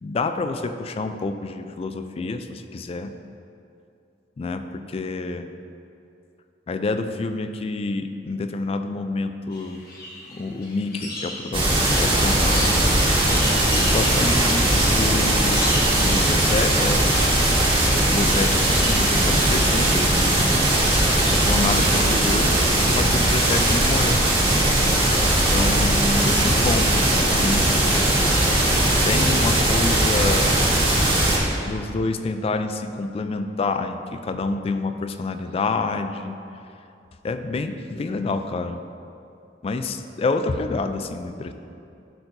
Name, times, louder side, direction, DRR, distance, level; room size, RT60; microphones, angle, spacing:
voice 1, 0.0-3.1 4.4-5.5 6.7-9.8 10.3-12.9 13.8-15.7 16.0-17.2 17.7-20.4 21.3-24.2 25.5-27.7 29.0-30.6 31.7-36.4 37.2-38.8 39.6-41.5, left 3 dB, 35° left, 9 dB, 0.3 m, -28 dB
sound 1, 9.5-22.2, left 1 dB, 55° left, 1.2 m, -36 dB
sound 2, 11.5-31.4, right 1 dB, 30° right, 1.5 m, -19 dB
11.5 x 4.4 x 2.6 m, 2.6 s
head